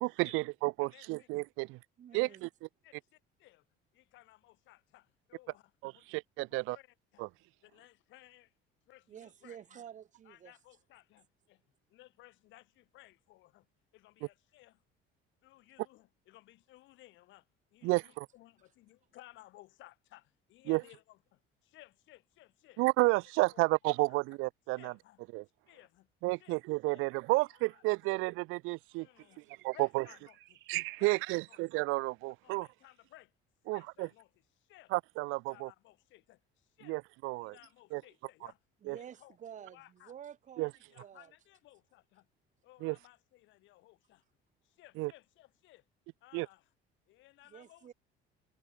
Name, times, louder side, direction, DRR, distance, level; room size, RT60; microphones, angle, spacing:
voice 1, 0.0-1.7 2.1-2.5 5.8-6.8 7.2-7.3 17.8-18.3 20.7-20.8 22.8-24.9 25.3-25.4 26.2-29.1 29.6-30.0 30.7-32.7 33.7-34.1 34.9-35.7 36.9-37.5 37.9-38.0 38.9-39.0 40.6-40.7 42.8-43.0 45.0-45.1 46.3-46.5, right 24 dB, 85° right, 0.9 m, -31 dB
voice 2, 0.8-1.3 2.1-2.4 2.8-3.6 3.9-6.1 6.5-7.3 7.6-8.5 8.8-9.8 10.2-11.6 11.9-13.7 13.9-14.8 15.4-22.8 23.5-23.7 24.1-24.4 24.8-25.2 25.7-26.1 26.4-26.6 26.9-27.8 29.0-30.6 31.0-31.6 32.4-33.3 33.7-34.9 35.2-37.0 37.3-38.6 38.9-40.1 40.6-42.3 42.6-44.2 44.6-45.8 46.2-46.7 47.1-47.9, left 17 dB, 70° left, 4.7 m, -60 dB
voice 3, 2.0-2.5 9.1-10.5 28.9-29.0 38.8-40.7 41.0-41.3 47.5-47.9, right 9 dB, 35° right, 2.9 m, -50 dB
sound 1, 29.5-32.0, right 16 dB, 65° right, 3.0 m, -59 dB
cardioid pair, 155°, 20 cm